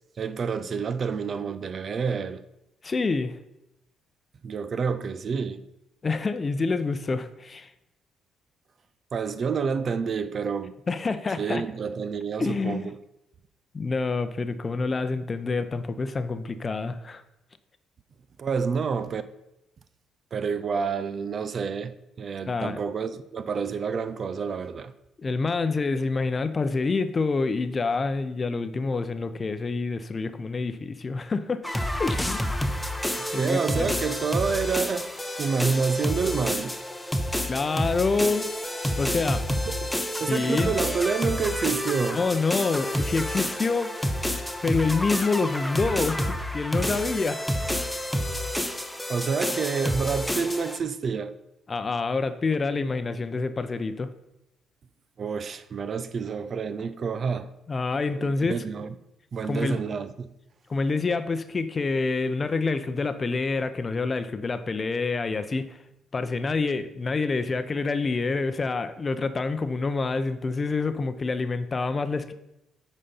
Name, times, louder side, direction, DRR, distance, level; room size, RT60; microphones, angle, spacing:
voice 1, 0.2-2.4 4.4-5.6 9.1-10.8 11.4-13.0 18.4-19.2 20.3-24.9 33.3-35.1 35.4-36.8 39.8-42.2 49.1-51.3 55.2-57.5 58.2-58.9 59.3-60.3, right 5 dB, 50° right, 0.5 m, -28 dB
voice 2, 2.8-3.4 6.0-7.7 10.9-11.6 12.4-12.9 13.7-17.2 22.5-22.8 25.2-31.6 32.0-32.6 33.3-34.0 37.5-38.5 39.0-39.4 40.2-40.7 42.1-43.9 44.6-47.4 51.7-54.1 57.7-58.6 59.5-59.8 60.7-65.8 66.1-72.3, left 4 dB, 35° left, 0.6 m, -27 dB
sound 1, 31.6-50.8, equal, 5° left, 0.8 m, -29 dB
8.5 x 4.2 x 5.6 m
supercardioid pair, 65°, 0 cm